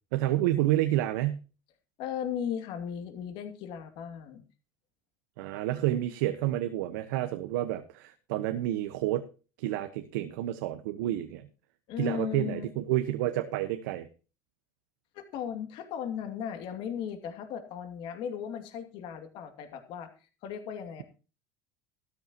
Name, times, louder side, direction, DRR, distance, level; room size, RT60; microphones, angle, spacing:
voice 1, 0.1-1.4 5.4-9.2 9.6-11.5 12.0-14.1, right 14 dB, 85° right, 8 dB, 1.2 m, -29 dB
voice 2, 2.0-4.4 11.9-12.7 15.1-21.0, left 8 dB, 60° left, 6 dB, 2.5 m, -36 dB
14.0 x 13.0 x 3.0 m, 0.34 s
supercardioid pair, 125°, 10 cm